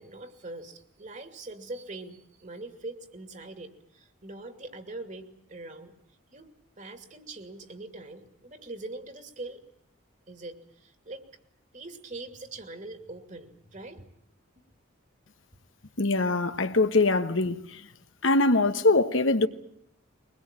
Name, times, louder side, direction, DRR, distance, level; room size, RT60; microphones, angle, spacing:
voice 1, 0.0-5.9 6.3-6.5 6.8-9.6 10.3-11.3 11.7-14.0, right 2 dB, 40° right, 2.6 m, -42 dB
voice 2, 16.0-17.8 18.2-19.5, left 2 dB, 70° left, 1.3 m, -23 dB
23.0 x 20.5 x 9.0 m
head